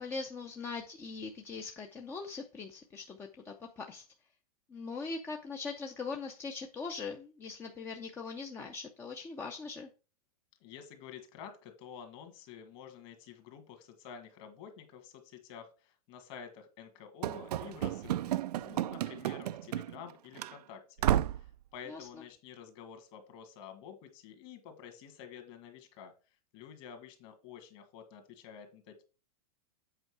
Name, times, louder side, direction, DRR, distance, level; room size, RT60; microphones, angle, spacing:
voice 1, 0.0-4.0 4.7-9.9 21.9-22.2, left 4 dB, 10° left, 3 dB, 0.5 m, -41 dB
voice 2, 10.6-21.1 21.3-26.1 26.5-29.0, left 8 dB, 40° left, 7 dB, 1.9 m, -50 dB
Run / Slam, 17.2-20.1 20.4-20.5 21.0-21.5, right 12 dB, 85° right, 0.4 m, -32 dB
8.0 x 4.6 x 4.7 m, 0.32 s
supercardioid pair, 155°, 20 cm